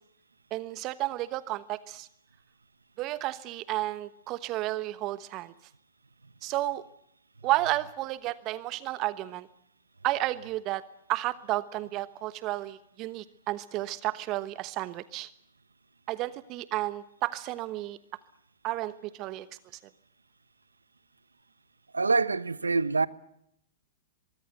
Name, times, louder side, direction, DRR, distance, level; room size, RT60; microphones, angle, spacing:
voice 1, 0.5-2.1 3.0-5.5 6.4-6.8 7.4-9.5 10.0-10.8 11.1-15.3 16.1-18.0 18.6-19.5, right 16 dB, 35° right, 1.1 m, -32 dB
voice 2, 21.9-23.1, right 4 dB, 85° right, 1.0 m, -25 dB
24.0 x 23.5 x 8.0 m
figure-of-eight pair, 105°, 0 cm